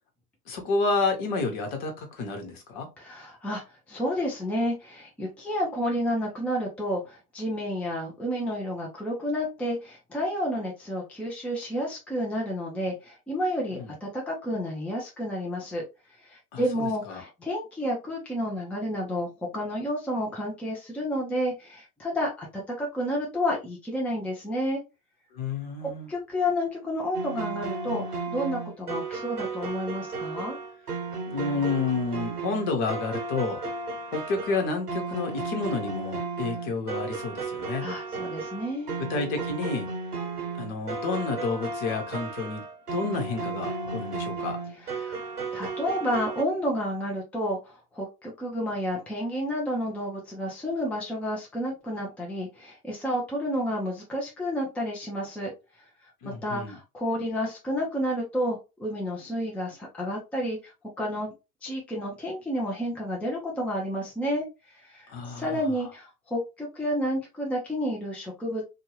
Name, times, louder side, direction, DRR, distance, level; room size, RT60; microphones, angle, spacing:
voice 1, 0.5-2.9 13.7-13.9 16.5-17.2 25.3-26.1 31.3-33.6 34.1-37.9 39.0-39.9 40.6-42.6 42.9-44.6 56.2-56.8 65.1-65.5, left 3 dB, 45° left, 1.2 m, -30 dB
voice 2, 3.0-3.6 3.9-15.8 16.2-24.8 26.1-30.6 37.8-39.0 44.8-55.5 56.0-61.3 61.6-64.5 64.7-68.7, equal, 5° left, 0.6 m, -30 dB
sound 1, 27.1-46.4, right 4 dB, 85° right, 0.7 m, -34 dB
2.7 x 2.4 x 3.0 m
figure-of-eight pair, 85°, 45 cm